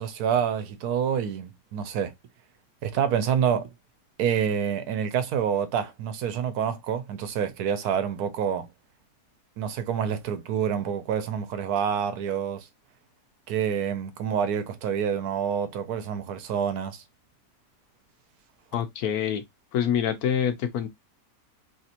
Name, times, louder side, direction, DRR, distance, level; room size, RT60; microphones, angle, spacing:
voice 1, 0.0-2.1 2.8-3.7 4.2-8.7 9.6-12.7 13.5-17.0, right 8 dB, 85° right, 1.2 m, -27 dB
voice 2, 18.7-19.4 19.7-20.9, left 9 dB, 75° left, 1.2 m, -26 dB
3.2 x 2.8 x 2.5 m
omnidirectional pair, 1.6 m